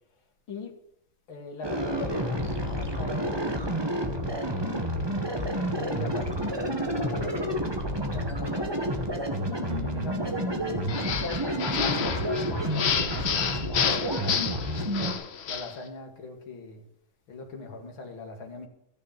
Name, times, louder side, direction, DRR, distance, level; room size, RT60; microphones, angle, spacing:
voice 1, 1.3-3.4 4.1-4.7 5.6-7.7 7.9-9.4 9.8-11.0 11.4-14.5 14.8-15.1 15.5-16.8 17.3-18.7, left 4 dB, 70° left, 2.9 m, -41 dB
sound 1, 1.6-15.1, equal, 15° right, 1.7 m, -29 dB
Keyboard (musical), 9.7-13.3, right 4 dB, 35° right, 2.0 m, -44 dB
sound 2, 10.9-15.8, left 7 dB, 90° left, 0.5 m, -30 dB
14.5 x 6.7 x 8.8 m
omnidirectional pair, 2.3 m